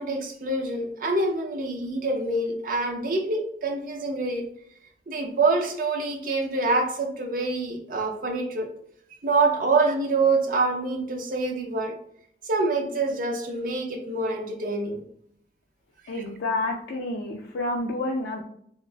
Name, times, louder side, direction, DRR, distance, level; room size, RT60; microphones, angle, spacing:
voice 1, 0.0-4.4 5.1-8.7 9.2-11.9 12.4-15.0, right 3 dB, 50° right, 4 dB, 0.4 m, -26 dB
voice 2, 16.1-18.4, left 2 dB, 85° left, -1 dB, 0.4 m, -29 dB
2.9 x 2.4 x 2.2 m, 0.69 s
head